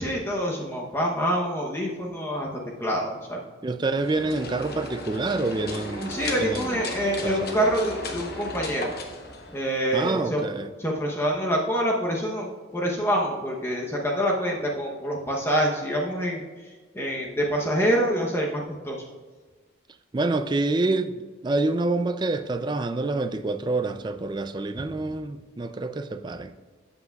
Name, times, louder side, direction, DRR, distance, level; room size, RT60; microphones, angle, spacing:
voice 1, 0.0-2.5 2.8-3.4 6.1-8.9 9.5-10.4 10.8-16.4 16.9-19.0, equal, 10° left, 0.8 m, -26 dB
voice 2, 3.6-6.7 7.2-7.7 9.9-10.7 20.1-26.5, right 2 dB, 20° right, 0.3 m, -27 dB
sound 1, 3.9-10.0, left 2 dB, 50° left, 1.1 m, -36 dB
13.0 x 8.0 x 2.3 m
head